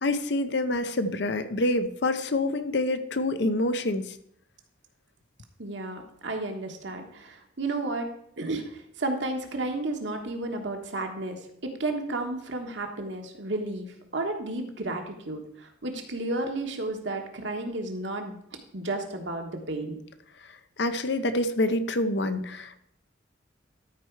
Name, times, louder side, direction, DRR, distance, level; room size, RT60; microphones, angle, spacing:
voice 1, 0.0-4.2 20.8-22.8, left 2 dB, 65° left, 11 dB, 0.7 m, -27 dB
voice 2, 5.6-8.1 8.4-11.4 11.6-13.9 14.1-18.3 18.7-20.0, right 2 dB, 70° right, 4 dB, 1.3 m, -32 dB
13.0 x 4.5 x 4.6 m, 0.71 s
head